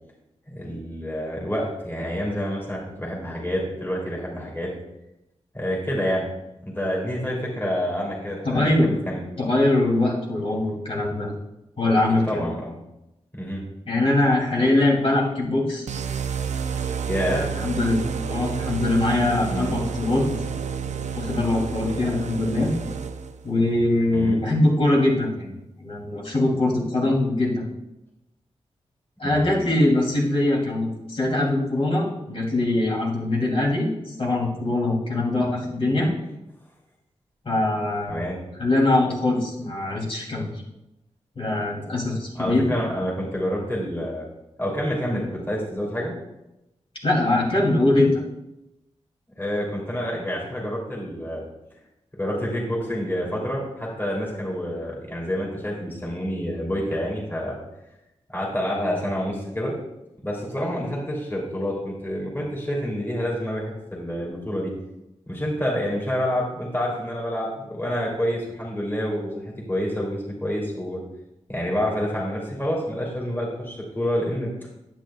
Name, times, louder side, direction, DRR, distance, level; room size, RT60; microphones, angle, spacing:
voice 1, 0.5-4.7 5.5-6.3 6.6-9.2 12.3-12.7 13.3-13.6 17.0-17.4 19.5-19.7 24.1-24.4 29.2-29.5 38.1-38.4 42.3-44.2 44.6-46.1 49.4-51.4 52.2-57.6 58.3-59.7 60.2-64.7 65.3-71.0 71.5-74.5, equal, 20° left, -4 dB, 2.9 m, -28 dB
voice 2, 8.4-8.9 9.4-11.3 11.8-12.4 13.9-15.9 17.3-20.3 21.1-22.7 23.4-25.5 25.8-27.7 29.2-36.1 37.4-38.2 38.6-40.5 41.4-42.7 47.0-48.1, left 2 dB, 50° left, -4 dB, 2.7 m, -22 dB
sound 1, 15.9-23.5, right 7 dB, 80° right, 0.5 m, -30 dB
10.5 x 8.7 x 2.3 m, 0.91 s
wide cardioid pair, 85°, 12 cm